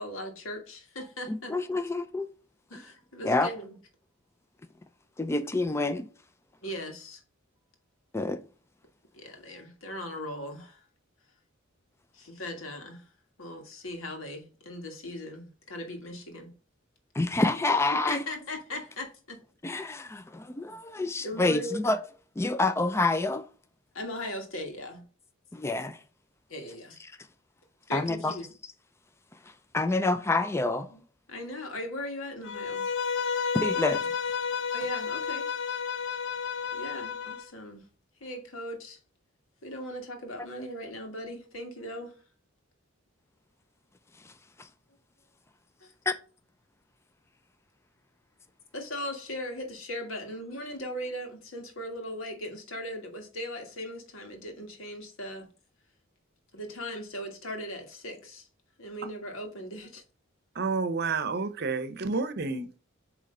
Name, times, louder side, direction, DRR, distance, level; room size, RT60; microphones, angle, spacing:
voice 1, 0.0-1.5 2.7-3.8 6.6-7.2 9.1-10.8 12.1-13.0 13.4-16.5 17.9-19.4 21.0-21.9 23.9-25.0 26.5-27.0 27.9-28.5 30.9-31.0 31.3-32.9 34.7-35.5 36.7-37.8 38.2-39.0 39.6-42.1 45.8-45.9 48.7-55.5 56.5-58.5 58.8-60.0, left 1 dB, 85° left, 1.7 m, -38 dB
voice 2, 1.3-2.3 2.7-2.8 3.2-3.5 5.2-6.1 8.1-8.4 17.1-18.2 19.6-22.0 22.4-23.5 25.5-26.0 27.9-28.3 29.7-30.9 33.5-34.1 46.1-46.2, left 2 dB, 15° left, 0.4 m, -27 dB
Bowed string instrument, 32.5-37.4, left 6 dB, 60° left, 0.6 m, -31 dB
voice 3, 60.5-62.8, right 4 dB, 55° right, 0.7 m, -30 dB
8.2 x 3.1 x 3.8 m
head